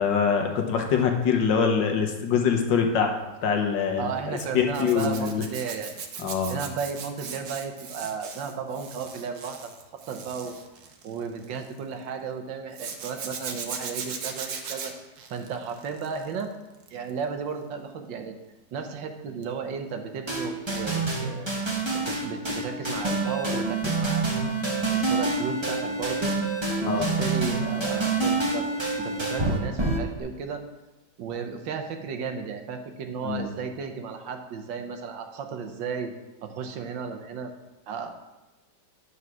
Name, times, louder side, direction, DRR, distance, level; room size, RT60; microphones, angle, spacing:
voice 1, 0.0-3.2 3.4-5.4 6.2-6.6 26.8-27.1 33.2-33.5, left 6 dB, 80° left, 3 dB, 1.7 m, -24 dB
voice 2, 4.0-5.9 6.5-9.8 10.1-10.6 11.0-14.9 15.3-16.5 16.9-18.3 18.7-21.5 21.9-24.6 24.9-26.3 26.7-28.7 29.0-30.6 31.2-36.1 36.4-37.5 37.9-38.1, right 6 dB, 85° right, 5 dB, 1.7 m, -34 dB
Zipper (clothing), 4.4-11.8 12.7-16.4 16.7-17.1 19.4-19.6 19.8-19.9, right 6 dB, 60° right, 1.3 m, -38 dB
sound 1, 20.3-30.2, right 3 dB, 20° right, 1.1 m, -27 dB
9.7 x 4.8 x 6.2 m, 1.1 s
omnidirectional pair, 2.0 m